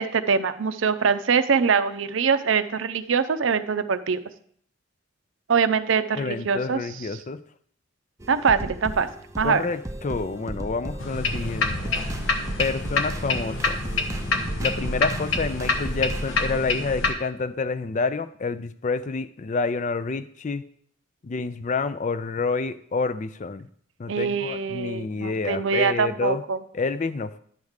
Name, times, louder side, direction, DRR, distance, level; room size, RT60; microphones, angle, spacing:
voice 1, 0.0-4.2 5.5-6.8 8.3-9.1 9.4-9.6 24.1-26.6, right 5 dB, 65° right, 11 dB, 0.5 m, -23 dB
voice 2, 6.2-7.4 9.4-11.9 12.6-13.8 14.6-20.6 21.2-23.7 24.0-26.4 26.7-27.4, left 4 dB, 35° left, 13 dB, 0.4 m, -28 dB
sound 1, 8.2-16.4, right 1 dB, 15° right, 0.5 m, -36 dB
sound 2, 11.0-17.1, left 3 dB, 70° left, 1.0 m, -27 dB
10.5 x 3.6 x 6.4 m, 0.62 s
head